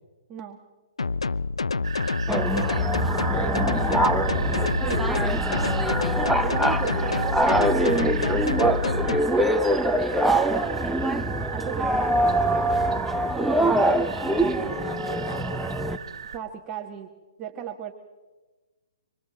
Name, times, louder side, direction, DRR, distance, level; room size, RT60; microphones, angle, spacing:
sound 1, 1.0-9.2, left 4 dB, 90° left, 0.6 m, -27 dB
sound 2, 1.8-16.4, right 7 dB, 65° right, 1.4 m, -35 dB
sound 3, 2.3-16.0, right 1 dB, ahead, 0.9 m, -24 dB
voice 1, 3.1-4.0 6.5-7.1 14.2-15.5, equal, 20° left, 2 dB, 3.9 m, -37 dB
voice 2, 6.4-8.1 8.4-10.1 11.5-12.3 12.9-13.3 16.3-17.1 17.4-17.9, right 9 dB, 25° right, 3 dB, 1.5 m, -36 dB
26.0 x 25.5 x 4.0 m, 1.2 s
hypercardioid pair, 140°, 3 cm